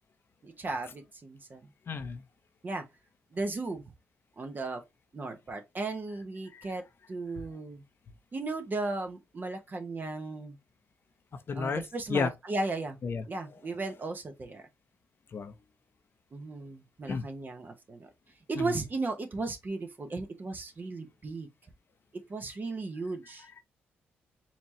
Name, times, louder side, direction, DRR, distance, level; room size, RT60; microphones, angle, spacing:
voice 1, 0.4-1.6 2.6-2.8 3.3-3.8 4.4-4.8 5.1-7.8 8.3-10.6 11.6-13.0 13.3-14.6 16.3-18.1 18.5-21.5 22.1-23.5, right 3 dB, 40° right, 1.0 m, -36 dB
voice 2, 1.9-2.2 6.5-6.7 11.3-11.8 12.1-12.3 13.0-13.2 15.3-15.5 17.1-17.2 18.6-18.7, left 5 dB, 55° left, 0.7 m, -32 dB
4.3 x 2.9 x 2.8 m
supercardioid pair, 50°, 5 cm